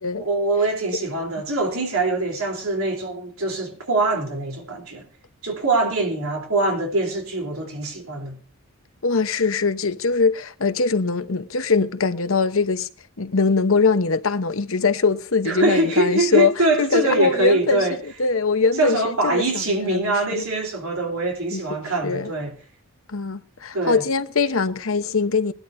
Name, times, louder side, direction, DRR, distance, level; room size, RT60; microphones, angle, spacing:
voice 1, 0.2-5.1 5.4-8.4 15.4-18.0 18.8-22.5 23.7-24.0, right 2 dB, 75° right, 3.6 m, -23 dB
voice 2, 9.0-12.9 13.2-16.5 16.8-17.8 18.2-20.5 21.5-21.6 22.0-22.3 23.1-25.5, left 4 dB, 70° left, 1.0 m, -22 dB
20.5 x 12.0 x 2.7 m
head